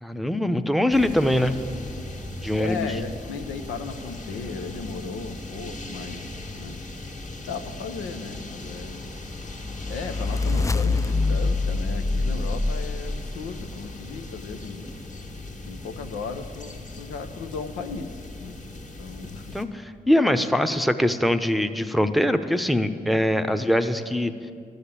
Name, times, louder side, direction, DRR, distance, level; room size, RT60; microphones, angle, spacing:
voice 1, 0.0-1.6 2.4-2.8 19.5-24.3, left 1 dB, ahead, 8 dB, 0.7 m, -22 dB
sound 1, 0.9-19.7, left 2 dB, 40° left, 1.8 m, -39 dB
voice 2, 2.5-6.8 7.4-9.1 9.8-14.9 15.6-18.6 19.0-19.6, left 5 dB, 90° left, 6 dB, 0.7 m, -36 dB
sound 2, 9.4-13.7, left 3 dB, 15° left, 0.3 m, -25 dB
12.5 x 6.6 x 8.8 m, 2.3 s
supercardioid pair, 45°, 19 cm